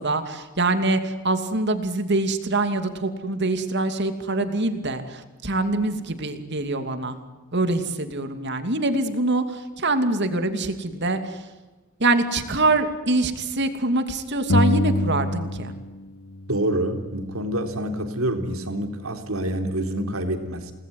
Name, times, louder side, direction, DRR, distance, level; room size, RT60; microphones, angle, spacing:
voice 1, 0.0-7.2 7.5-11.4 12.0-15.7, right 2 dB, 55° right, 8 dB, 2.7 m, -24 dB
sound 1, 14.5-16.0 16.3-18.0, left 1 dB, 85° left, 1.4 m, -26 dB
voice 2, 16.5-20.7, right 1 dB, 85° right, 6 dB, 3.8 m, -27 dB
29.5 x 20.0 x 9.6 m, 1.2 s
head